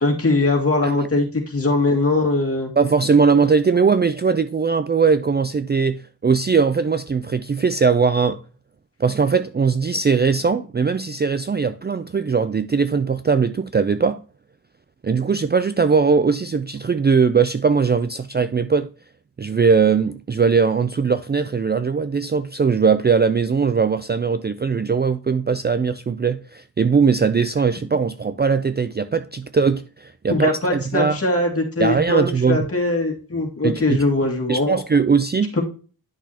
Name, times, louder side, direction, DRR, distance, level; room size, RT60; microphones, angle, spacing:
voice 1, 0.0-2.7 30.3-34.8, left 2 dB, 40° left, 2.2 m, -21 dB
voice 2, 2.8-8.4 9.0-14.2 15.0-18.9 19.4-31.2 31.8-32.7 33.6-34.0 34.5-35.5, right 5 dB, 30° right, 0.4 m, -20 dB
10.5 x 6.1 x 2.9 m
wide cardioid pair, 130°, 37 cm